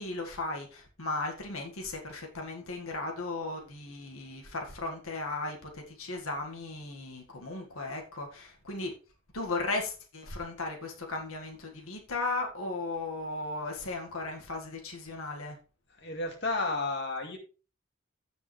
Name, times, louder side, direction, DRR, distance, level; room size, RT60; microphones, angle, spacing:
voice 1, 0.0-8.9 9.3-15.6, left 2 dB, 85° left, 2 dB, 1.9 m, -36 dB
voice 2, 15.9-17.4, left 3 dB, 55° left, 2 dB, 2.2 m, -32 dB
16.0 x 5.3 x 3.3 m, 0.35 s
head